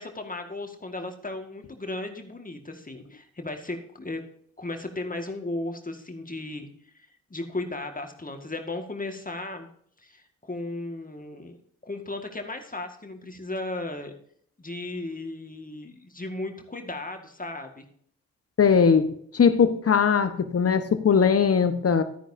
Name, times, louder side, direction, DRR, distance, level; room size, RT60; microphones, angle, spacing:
voice 1, 0.0-4.2 4.6-9.7 10.0-11.6 11.8-14.1 14.6-17.8, left 2 dB, 25° left, 4 dB, 1.9 m, -35 dB
voice 2, 18.6-22.0, left 6 dB, 45° left, 10 dB, 1.3 m, -20 dB
12.5 x 10.0 x 2.8 m, 0.64 s
hypercardioid pair, 40°, 34 cm